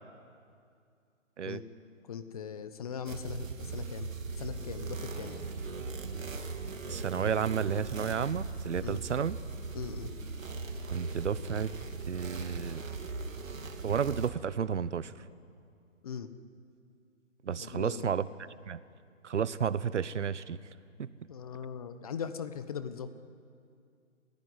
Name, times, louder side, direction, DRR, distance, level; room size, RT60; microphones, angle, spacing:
voice 1, 2.0-4.1 4.4-5.5 8.8-9.0 9.7-10.1 16.0-16.3 17.6-18.0 21.3-23.1, left 7 dB, 30° left, 11 dB, 1.0 m, -40 dB
sound 1, 3.1-14.3, right 4 dB, 80° right, 2.8 m, -39 dB
voice 2, 6.9-9.4 10.9-11.7 12.1-12.8 13.8-15.1 17.4-18.3 18.7-18.8 19.2-20.6 21.0-21.1, right 7 dB, 65° right, 17 dB, 1.0 m, -32 dB
27.0 x 16.0 x 9.6 m, 2.4 s
hypercardioid pair, 160°, 39 cm